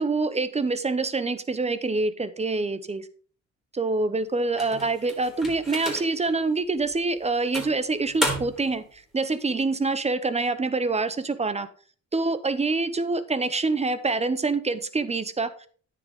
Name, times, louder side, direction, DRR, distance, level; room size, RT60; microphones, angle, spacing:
voice 1, 0.0-3.1 3.7-11.7 12.1-15.7, right 3 dB, 20° right, 14 dB, 0.9 m, -26 dB
sound 1, 4.6-6.3 6.8-7.0 7.5-8.7, equal, ahead, 3.4 m, -32 dB
9.6 x 7.8 x 3.7 m, 0.43 s
cardioid pair, 90°, 30 cm